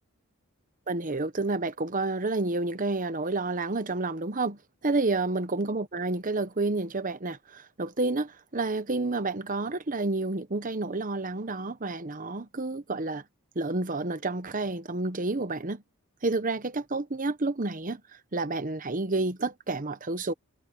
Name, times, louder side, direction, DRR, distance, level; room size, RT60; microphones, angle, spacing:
voice 1, 0.9-13.2 13.5-15.8 16.2-18.0 18.3-20.3, right 3 dB, 35° right, 1.0 m, -30 dB
head